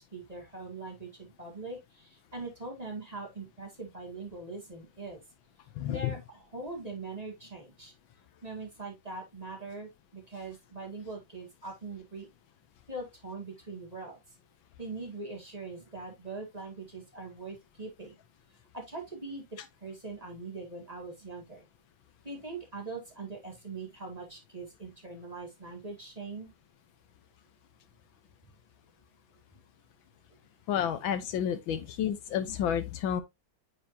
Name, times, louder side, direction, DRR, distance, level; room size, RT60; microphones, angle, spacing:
voice 1, 0.0-5.2 5.9-7.9 8.4-12.3 12.9-14.2 14.8-18.2 18.7-19.4 19.8-21.6 22.2-26.5, right 3 dB, 20° right, 2.2 m, -42 dB
voice 2, 5.8-6.1 30.7-33.2, left 9 dB, 75° left, 1.5 m, -30 dB
8.8 x 5.0 x 2.7 m
omnidirectional pair, 2.2 m